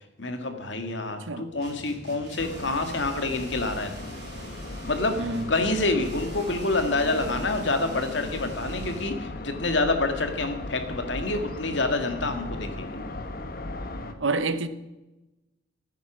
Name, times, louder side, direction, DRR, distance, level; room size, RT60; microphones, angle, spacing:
voice 1, 0.2-4.1 4.9-5.2 5.5-13.0, left 2 dB, 65° left, 2.0 m, -27 dB
sound 1, 1.6-9.2, right 2 dB, 55° right, 3.8 m, -45 dB
sound 2, 2.4-14.1, left 2 dB, 50° left, 1.2 m, -37 dB
voice 2, 14.2-14.7, right 3 dB, 75° right, 1.0 m, -27 dB
16.0 x 9.5 x 6.2 m
head